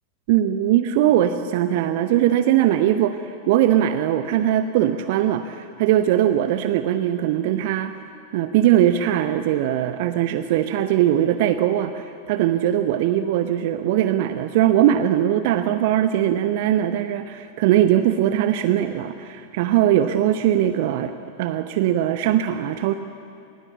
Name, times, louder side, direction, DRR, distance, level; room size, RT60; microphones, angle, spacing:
voice 1, 0.3-8.0 8.3-21.1 21.4-22.9, right 11 dB, 50° right, 11 dB, 0.8 m, -20 dB
27.5 x 20.0 x 7.4 m, 2.6 s
figure-of-eight pair, 90°, 0 cm